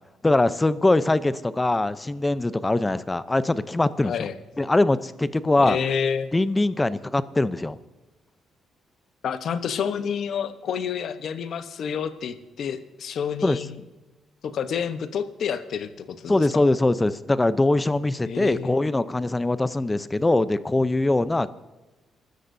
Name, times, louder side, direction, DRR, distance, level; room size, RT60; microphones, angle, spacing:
voice 1, 0.2-4.3 4.6-5.8 6.3-7.8 13.4-13.6 16.3-21.5, left 2 dB, 15° left, 14 dB, 0.7 m, -22 dB
voice 2, 4.0-4.3 5.6-6.3 9.2-13.8 14.4-16.6 18.3-18.8, left 7 dB, 65° left, 10 dB, 1.0 m, -29 dB
27.0 x 13.0 x 2.7 m, 1.1 s
cardioid pair, 90°, 0 cm